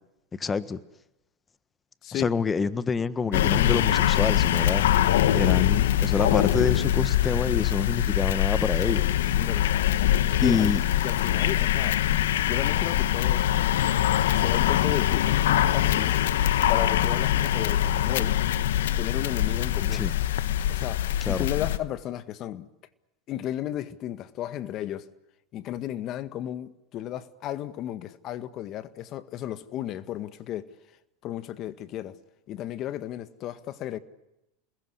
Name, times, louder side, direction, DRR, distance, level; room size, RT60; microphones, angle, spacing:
voice 1, 0.4-0.8 2.1-4.9 5.3-9.3 10.4-10.8 19.9-20.1 21.2-21.5, left 5 dB, 20° left, 1.5 m, -27 dB
sound 1, 3.3-21.8, left 12 dB, 80° left, 1.2 m, -23 dB
voice 2, 9.4-9.7 10.4-10.7 11.0-12.0 12.5-13.8 14.1-16.2 16.7-18.4 19.0-20.1 20.7-22.7 23.3-25.1 25.5-30.7 31.2-32.2 32.5-34.0, left 12 dB, 45° left, 1.8 m, -34 dB
28.0 x 21.0 x 8.2 m
hypercardioid pair, 100°, 0 cm